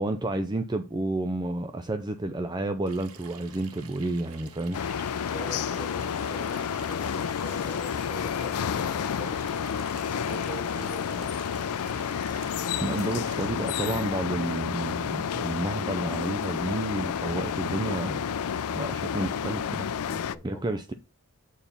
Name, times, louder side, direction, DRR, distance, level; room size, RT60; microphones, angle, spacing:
voice 1, 0.0-4.8 12.8-18.2 18.7-19.9 20.4-20.9, right 2 dB, 20° right, 0.4 m, -30 dB
Water tap faucet / Sink (filling or washing), 2.9-13.5, right 7 dB, 75° right, 1.0 m, -49 dB
sound 1, 4.5-18.2, right 1 dB, 35° left, 1.7 m, -54 dB
sound 2, 4.7-20.4, left 7 dB, 85° left, 0.4 m, -30 dB
voice 2, 5.3-11.4 20.0-20.7, left 1 dB, 10° left, 2.0 m, -43 dB
7.1 x 4.2 x 5.4 m
head